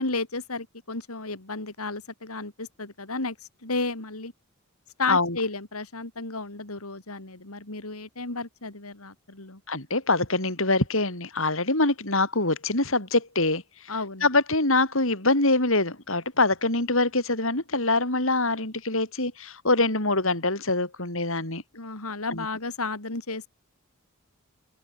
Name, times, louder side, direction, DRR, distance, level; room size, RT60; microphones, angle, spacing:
voice 1, 0.0-3.4 3.6-4.3 5.0-9.6 13.9-14.2 21.7-23.5, left 3 dB, 85° left, 3.5 m, -33 dB
voice 2, 9.7-13.6 14.2-21.6 22.3-22.4, left 2 dB, 65° left, 6.8 m, -24 dB
head